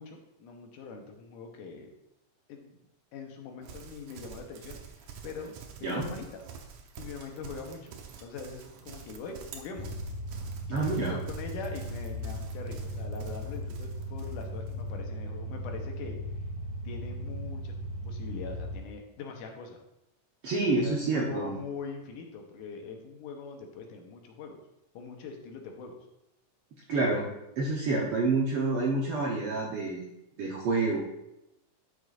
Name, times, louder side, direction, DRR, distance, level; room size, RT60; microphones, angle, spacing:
voice 1, 0.0-1.9 2.5-2.8 3.1-5.5 5.8-6.4 7.0-9.9 10.7-16.2 16.8-17.7 18.0-19.8 20.8-24.6 24.9-26.0, left 4 dB, 80° left, 3 dB, 2.5 m, -42 dB
Livestock farm animals working animals, 3.6-14.8, right 6 dB, 85° right, 2.5 m, -47 dB
sound 1, 9.7-18.8, equal, 35° left, 0.5 m, -37 dB
voice 2, 10.7-11.2 20.4-21.5 26.9-27.3 27.6-30.1 30.4-31.0, right 3 dB, 65° right, -3 dB, 1.4 m, -28 dB
10.0 x 6.4 x 2.5 m, 0.88 s
omnidirectional pair, 3.7 m